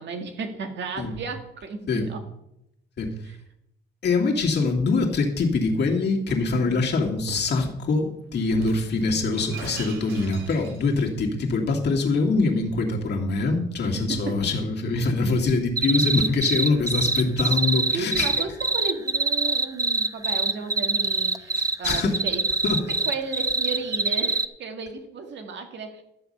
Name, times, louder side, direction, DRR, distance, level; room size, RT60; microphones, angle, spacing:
voice 1, 0.0-2.3 3.2-3.4 6.5-6.8 13.8-14.4 17.9-22.5 23.1-26.0, right 4 dB, 65° right, 5 dB, 1.9 m, -34 dB
voice 2, 4.0-18.3 21.6-22.1 22.6-22.8, left 3 dB, 60° left, -1 dB, 2.5 m, -24 dB
Shatter, 5.7-6.5 7.3-7.6 8.4-11.1, right 5 dB, 90° right, 2.3 m, -41 dB
sound 1, 15.8-24.5, right 3 dB, 15° right, 0.6 m, -24 dB
13.0 x 7.1 x 5.5 m, 0.82 s
cardioid pair, 90°, 20 cm